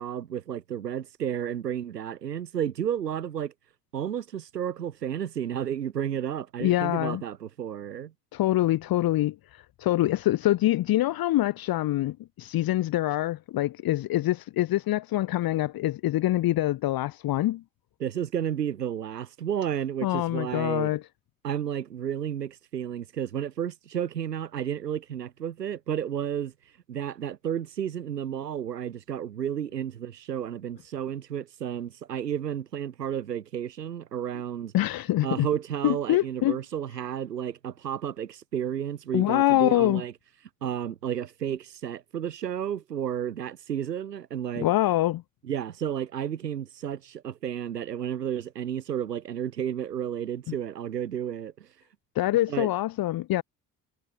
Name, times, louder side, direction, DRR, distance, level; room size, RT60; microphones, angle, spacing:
voice 1, 0.0-3.5 3.9-8.1 18.0-20.9 21.4-26.5 26.9-34.7 35.2-40.1 40.6-44.7 45.4-51.7 52.5-52.7, right 9 dB, 80° right, 2.8 m, -32 dB
voice 2, 6.6-7.2 8.3-17.6 20.0-21.0 34.7-35.5 35.8-36.6 39.1-40.0 44.6-45.2 52.1-53.4, left 15 dB, 45° left, 1.2 m, -25 dB
figure-of-eight pair, 50°, 48 cm